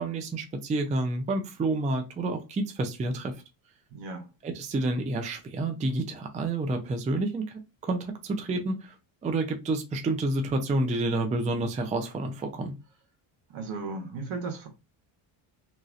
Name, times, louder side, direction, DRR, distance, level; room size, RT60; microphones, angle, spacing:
voice 1, 0.0-3.4 4.4-9.0 9.2-12.7, right 2 dB, 15° right, 0.4 m, -29 dB
voice 2, 3.9-4.3 13.5-14.7, right 3 dB, 70° right, 1.4 m, -35 dB
2.9 x 2.8 x 2.4 m
cardioid pair, 120°, 48 cm